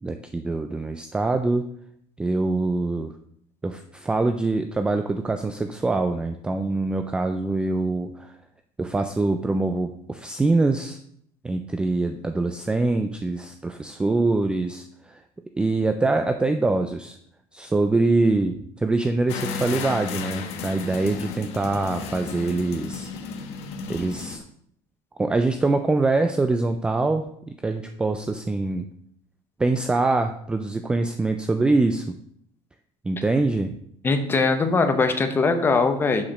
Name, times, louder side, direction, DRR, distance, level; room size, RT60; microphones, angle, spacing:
voice 1, 0.0-1.7 2.2-3.1 3.6-8.3 8.8-11.0 11.4-15.2 15.6-17.2 17.5-23.1 23.9-24.4 25.2-28.8 29.6-32.0 33.0-33.7, right 3 dB, 10° right, 7 dB, 0.3 m, -24 dB
sound 1, 19.3-24.4, left 5 dB, 55° left, 1.1 m, -33 dB
voice 2, 34.0-36.2, left 4 dB, 15° left, 7 dB, 0.9 m, -21 dB
7.1 x 5.0 x 6.2 m, 0.68 s
cardioid pair, 165°, 13 cm